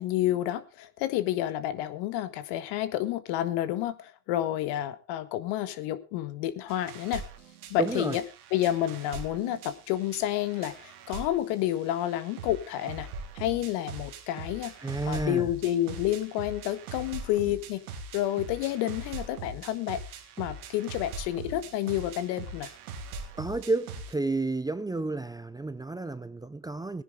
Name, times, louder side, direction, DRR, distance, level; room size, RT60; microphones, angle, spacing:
voice 1, 0.0-7.2 7.7-8.2 8.5-13.1 13.3-14.7 15.0-17.8 18.1-20.0 20.4-22.7, left 13 dB, 65° left, 1.6 m, -29 dB
sound 1, 6.7-24.1, right 3 dB, 85° right, 2.1 m, -42 dB
voice 2, 7.8-8.2 14.8-15.5 23.4-27.0, right 3 dB, 10° right, 0.6 m, -31 dB
18.0 x 10.0 x 3.7 m
hypercardioid pair, 80°, 43 cm